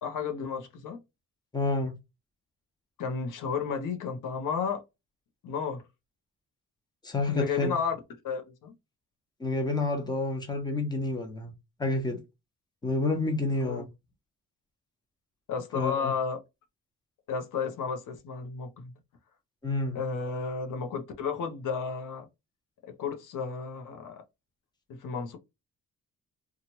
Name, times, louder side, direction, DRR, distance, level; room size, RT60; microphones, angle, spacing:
voice 1, 0.0-1.0 3.0-4.8 5.4-5.8 7.3-8.0 8.2-8.7 13.5-13.8 15.5-16.4 17.3-18.9 19.9-22.3 22.8-24.2 24.9-25.4, left 6 dB, 80° left, 0.8 m, -32 dB
voice 2, 1.5-1.9 7.0-7.7 9.4-11.5 11.8-12.2 12.8-13.9 15.7-16.1 19.6-20.0, left 2 dB, 15° left, 0.9 m, -29 dB
2.9 x 2.4 x 2.8 m
cardioid pair, 125°, 31 cm